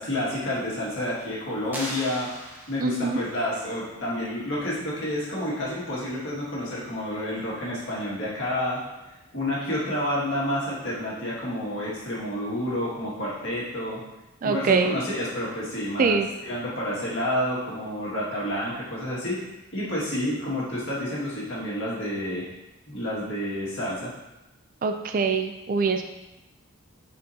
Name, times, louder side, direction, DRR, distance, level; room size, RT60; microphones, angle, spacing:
voice 1, 0.0-2.3 2.7-8.8 9.3-14.0 14.4-19.4 19.7-22.4 22.9-24.1, left 1 dB, 55° left, -7 dB, 2.0 m, -29 dB
sound 1, 1.7-3.2, equal, 10° right, 0.8 m, -37 dB
voice 2, 2.8-3.2 14.4-15.0 16.0-16.3 24.8-26.0, right 5 dB, 40° right, 7 dB, 0.3 m, -23 dB
7.6 x 4.4 x 2.8 m, 1.0 s
head